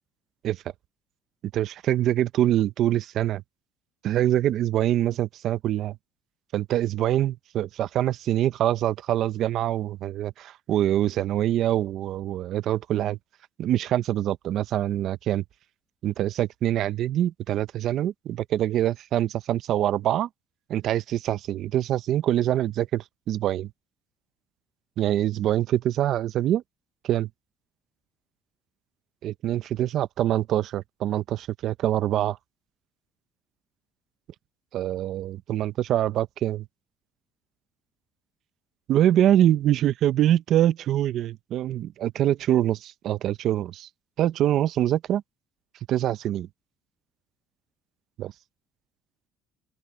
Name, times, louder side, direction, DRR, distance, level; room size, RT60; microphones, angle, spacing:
voice 1, 1.5-3.4 4.0-6.0 6.5-13.2 13.6-15.4 16.0-20.3 20.7-23.7 25.0-26.6 27.0-27.3 29.2-32.4 34.7-36.6 38.9-43.9 44.2-45.2 45.9-46.5 48.2-48.3, right 12 dB, 55° right, 0.6 m, -24 dB
open air
cardioid pair, 130°, 0 cm